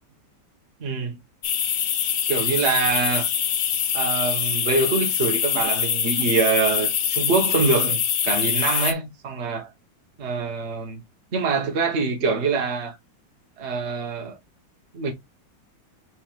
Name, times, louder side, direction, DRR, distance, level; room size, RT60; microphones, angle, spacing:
voice 1, 0.8-1.2 2.3-3.3 3.9-9.7 10.2-11.0 11.3-13.0 13.6-14.4 14.9-15.1, right 4 dB, 40° right, 1.4 m, -24 dB
sound 1, 1.4-8.9, left 9 dB, 70° left, 0.7 m, -24 dB
4.8 x 4.6 x 2.4 m
omnidirectional pair, 2.1 m